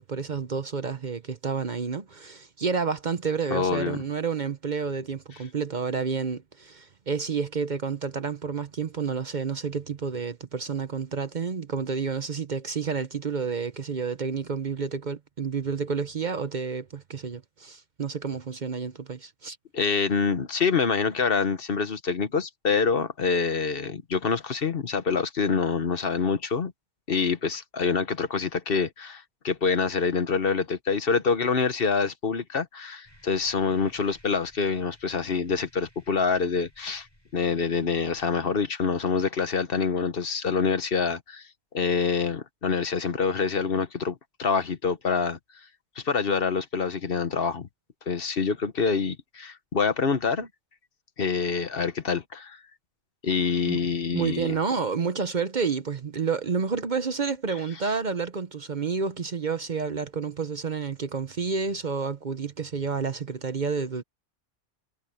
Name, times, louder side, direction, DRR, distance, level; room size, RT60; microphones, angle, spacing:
voice 1, 0.0-19.6 53.7-53.8 54.1-64.0, right 5 dB, 45° right, 0.9 m, -30 dB
voice 2, 3.5-4.0 19.7-26.7 27.1-37.1 37.3-41.5 41.7-45.4 46.0-47.7 48.1-50.5 51.2-52.6 53.2-54.6, left 5 dB, 55° left, 1.2 m, -26 dB
sound 1, 33.0-38.6, equal, 20° left, 7.7 m, -58 dB
omnidirectional pair, 1.2 m